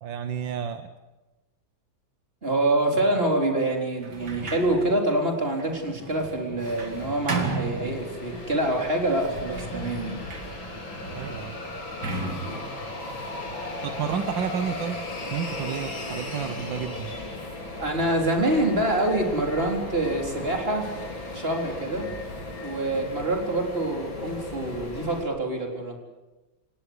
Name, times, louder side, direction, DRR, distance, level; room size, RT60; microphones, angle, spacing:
voice 1, 0.0-0.9 8.3-8.5 11.1-11.6 13.8-17.1, right 8 dB, 75° right, 9 dB, 1.7 m, -31 dB
voice 2, 2.4-10.2 12.5-12.6 17.8-20.9 21.3-22.1 22.6-26.0, right 1 dB, 30° right, 2 dB, 4.0 m, -26 dB
Sliding door, 4.0-8.5 9.1-14.0, right 4 dB, 60° right, 2.9 m, -36 dB
sound 1, 6.6-25.2, left 2 dB, 85° left, 4.4 m, -36 dB
28.0 x 17.5 x 8.0 m, 1.1 s
omnidirectional pair, 2.1 m